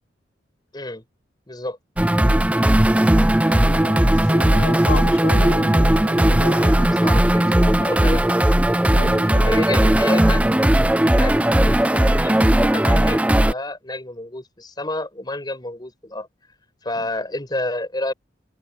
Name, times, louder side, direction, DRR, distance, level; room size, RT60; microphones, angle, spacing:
voice 1, 0.7-1.0 1.5-1.8 6.5-8.6 9.4-10.7 11.1-16.3 16.8-18.1, left 1 dB, 20° left, 5.3 m, -30 dB
sound 1, 2.0-13.5, right 1 dB, 5° right, 0.4 m, -17 dB
voice 2, 3.5-6.9 8.9-9.6, left 3 dB, 80° left, 1.9 m, -32 dB
head